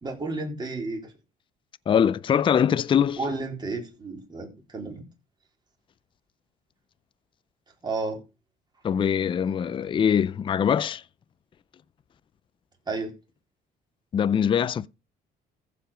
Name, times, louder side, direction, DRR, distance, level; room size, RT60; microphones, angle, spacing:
voice 1, 0.0-1.1 3.2-5.0 7.8-8.2 12.9-13.1, right 3 dB, 25° right, 3.8 m, -32 dB
voice 2, 1.9-3.2 8.8-11.0 14.1-14.9, left 8 dB, 30° left, 0.4 m, -22 dB
14.5 x 5.0 x 5.0 m
cardioid pair, 110°, 17 cm